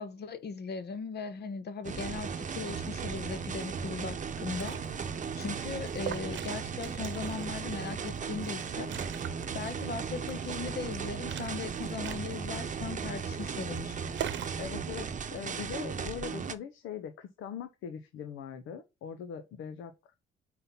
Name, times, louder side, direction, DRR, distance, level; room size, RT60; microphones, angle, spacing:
voice 1, 0.0-4.8 5.4-8.9 9.5-14.0, left 5 dB, 55° left, 1.1 m, -38 dB
sound 1, 1.8-16.5, right 6 dB, 40° right, 0.8 m, -36 dB
Liquid, 4.3-14.6, right 11 dB, 70° right, 0.8 m, -43 dB
voice 2, 14.6-19.9, left 8 dB, 85° left, 0.8 m, -41 dB
5.7 x 4.3 x 5.4 m
cardioid pair, 90°, 20 cm